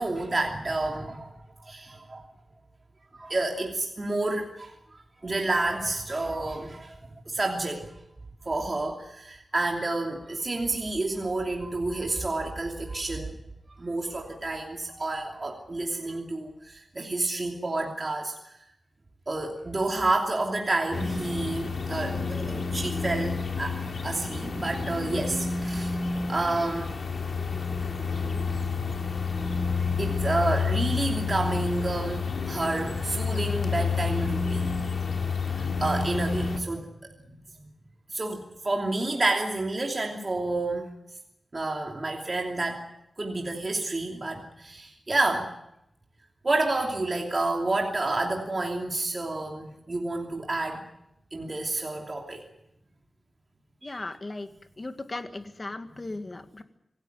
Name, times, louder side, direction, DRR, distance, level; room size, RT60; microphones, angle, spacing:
voice 1, 0.0-1.3 1.7-2.2 3.1-4.7 5.2-7.0 7.3-7.9 8.4-13.4 13.8-18.3 19.3-26.0 26.3-26.9 28.1-28.2 30.0-34.7 35.8-36.9 37.2-37.4 38.1-40.8 41.5-42.8 43.2-45.5 46.4-50.8 51.3-52.4 53.8-54.0 55.9-56.1, right 2 dB, 30° right, 1 dB, 2.9 m, -29 dB
sound 1, 20.9-36.6, left 4 dB, 60° left, 3.4 m, -29 dB
voice 2, 53.8-54.5 54.8-56.6, left 2 dB, 30° left, 8 dB, 1.9 m, -37 dB
26.5 x 16.5 x 9.1 m, 0.83 s
wide cardioid pair, 125°, 0 cm